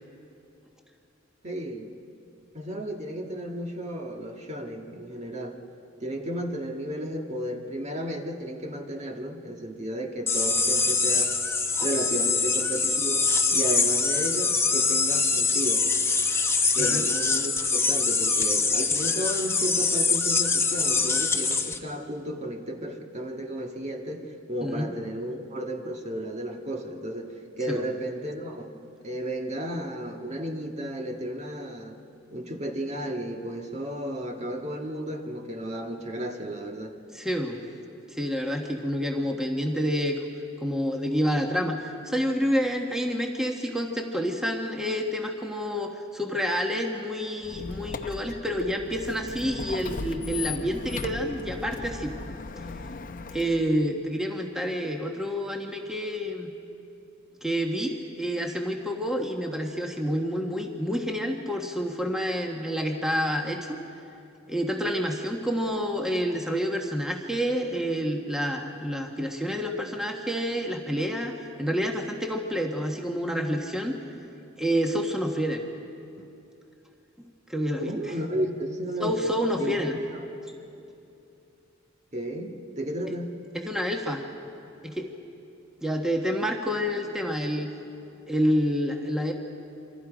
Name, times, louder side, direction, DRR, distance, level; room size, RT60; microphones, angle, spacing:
voice 1, 1.4-1.9 2.5-5.6 6.0-11.3 11.8-15.9 16.7-28.7 29.0-32.0 32.3-36.9 77.8-79.3 79.6-80.2 82.1-83.4, equal, 35° right, 2 dB, 1.7 m, -33 dB
sound 1, 10.3-21.8, left 4 dB, 15° left, 0.9 m, -24 dB
voice 2, 37.1-37.6 38.1-40.2 40.6-52.1 53.3-56.5 57.4-63.8 64.5-74.0 74.6-75.6 77.5-77.9 79.0-80.0 83.5-84.2 84.8-85.1 85.8-87.7 88.3-89.3, equal, 5° right, 1 dB, 1.4 m, -28 dB
Squeak, 47.4-53.8, left 4 dB, 45° left, 0.7 m, -37 dB
27.5 x 25.0 x 5.0 m, 2.8 s
head